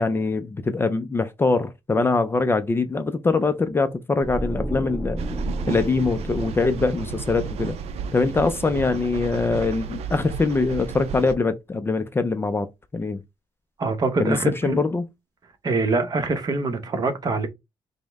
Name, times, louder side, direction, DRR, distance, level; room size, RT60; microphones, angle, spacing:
voice 1, 0.0-5.2 5.7-7.8 8.1-12.7 12.9-13.2 14.2-15.0, left 3 dB, 20° left, 0.4 m, -23 dB
sound 1, 4.2-9.3 9.6-9.8, right 1 dB, 15° right, 0.9 m, -34 dB
sound 2, 5.2-11.3, right 6 dB, 80° right, 0.4 m, -33 dB
voice 2, 13.8-14.8 15.6-17.5, right 3 dB, 40° right, 0.8 m, -24 dB
5.2 x 2.1 x 3.4 m
cardioid pair, 125°, 11 cm